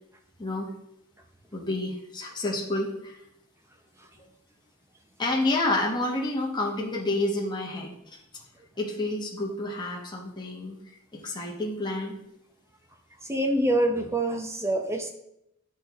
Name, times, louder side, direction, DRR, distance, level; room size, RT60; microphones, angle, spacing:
voice 1, 1.5-3.2 5.2-8.2 8.8-12.1, left 2 dB, 20° left, -2 dB, 1.0 m, -29 dB
voice 2, 13.2-15.1, right 1 dB, 10° right, 4 dB, 0.7 m, -26 dB
10.0 x 4.4 x 3.5 m, 0.81 s
head